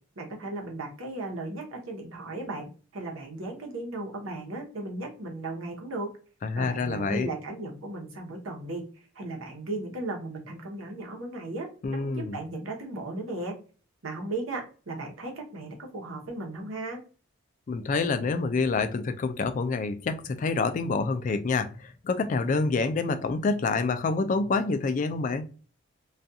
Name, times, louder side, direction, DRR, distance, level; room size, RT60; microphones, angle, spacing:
voice 1, 0.2-2.7 2.9-6.1 6.5-8.8 9.1-13.5 14.0-17.0, right 2 dB, 80° right, 0.9 m, -36 dB
voice 2, 6.4-7.3 11.8-12.4 17.7-25.5, left 4 dB, 40° left, 0.3 m, -27 dB
2.4 x 2.3 x 2.6 m
head